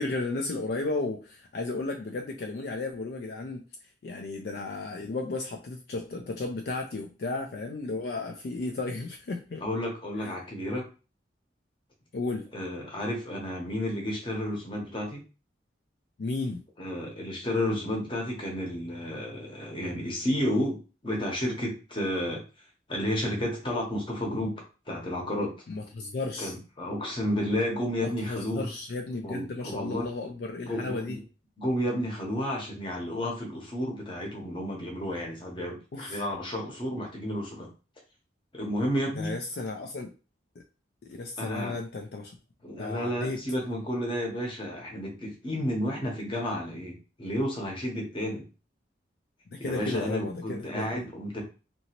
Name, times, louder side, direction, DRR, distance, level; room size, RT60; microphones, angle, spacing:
voice 1, 0.0-3.6 4.0-9.6 10.2-10.3 12.1-12.5 16.2-16.6 25.7-26.5 28.0-31.2 35.9-36.2 39.2-40.1 41.0-42.4 42.8-43.4 49.5-51.0, left 3 dB, 60° left, 3 dB, 0.4 m, -34 dB
voice 2, 9.6-10.9 12.5-15.2 16.8-22.4 22.9-25.5 26.4-28.7 29.2-30.0 30.7-31.2 31.6-37.7 38.5-39.4 41.4-41.8 42.6-48.4 49.6-51.4, equal, 25° left, 0 dB, 0.8 m, -31 dB
2.8 x 2.6 x 2.9 m, 0.33 s
head